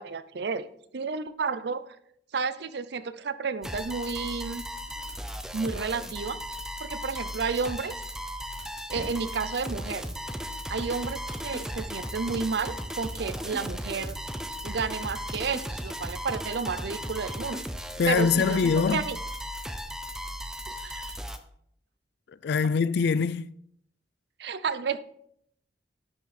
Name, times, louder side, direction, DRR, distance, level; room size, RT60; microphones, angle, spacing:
voice 1, 0.0-2.0 2.3-4.6 5.5-6.4 6.8-8.0 8.9-10.1 10.7-14.2 14.6-17.6 18.1-19.2 20.7-21.1 24.4-25.0, right 5 dB, 65° right, 0.5 m, -31 dB
sound 1, 3.6-21.4, equal, 5° right, 0.5 m, -36 dB
sound 2, 4.4-9.7, right 1 dB, 80° right, 3.7 m, -51 dB
voice 2, 18.0-19.0 22.4-23.5, left 5 dB, 65° left, 0.4 m, -23 dB
10.5 x 5.9 x 4.2 m
head